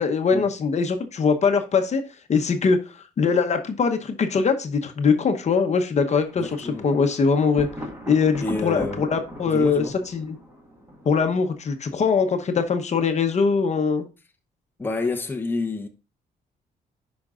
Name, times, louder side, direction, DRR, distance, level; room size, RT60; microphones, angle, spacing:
voice 1, 0.0-2.0 2.3-7.7 8.1-9.8 10.1-10.4 11.0-14.0, left 5 dB, 45° left, 0.9 m, -22 dB
Thunder, 6.0-11.8, equal, 15° right, 1.8 m, -40 dB
voice 2, 6.3-6.9 8.4-9.1 9.5-9.9 14.8-15.9, left 3 dB, 10° left, 0.8 m, -28 dB
10.5 x 5.2 x 2.4 m
cardioid pair, 115°, 17 cm